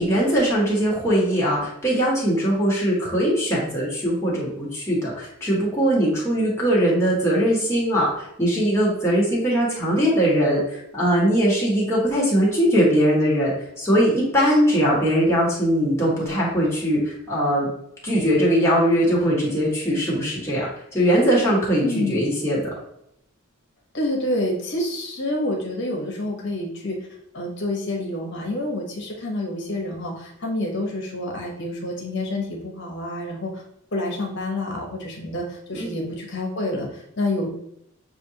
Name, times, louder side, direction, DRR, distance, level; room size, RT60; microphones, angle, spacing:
voice 1, 0.0-13.5 13.8-17.7 18.0-20.7 20.9-22.7 35.7-36.0, equal, 15° left, -6 dB, 1.7 m, -21 dB
voice 2, 21.8-22.2 23.9-27.1 27.3-33.6 33.9-37.5, left 1 dB, 55° left, 0 dB, 1.2 m, -28 dB
7.0 x 2.6 x 2.9 m, 0.75 s
head